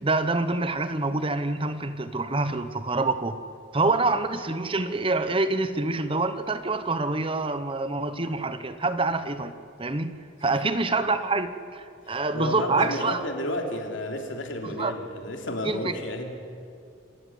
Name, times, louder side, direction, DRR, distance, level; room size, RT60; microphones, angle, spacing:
voice 1, 0.0-3.4 3.7-9.5 9.8-13.2 14.6-14.9 15.6-15.9, right 3 dB, 25° right, 11 dB, 0.9 m, -26 dB
voice 2, 12.1-16.3, left 1 dB, 75° left, 3 dB, 3.2 m, -32 dB
26.5 x 14.5 x 9.4 m, 2.4 s
head